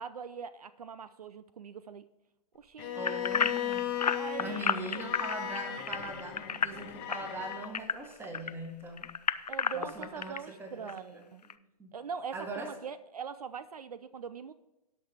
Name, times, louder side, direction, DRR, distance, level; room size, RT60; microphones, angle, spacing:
voice 1, 0.0-2.0 2.5-3.1 4.1-4.7 4.9-5.1 9.5-11.4 11.9-14.5, right 6 dB, 70° right, 15 dB, 0.5 m, -42 dB
Bowed string instrument, 2.8-7.7, left 11 dB, 35° left, 1.1 m, -37 dB
voice 2, 2.9-4.0 4.4-9.1 9.7-11.9 12.3-12.7, right 2 dB, 10° right, 4 dB, 1.6 m, -41 dB
sound 1, 3.0-8.5 9.0-10.4 10.9-11.0 11.5-11.6, left 6 dB, 85° left, 0.5 m, -32 dB
18.0 x 6.0 x 3.5 m, 0.93 s
figure-of-eight pair, 115°, 20 cm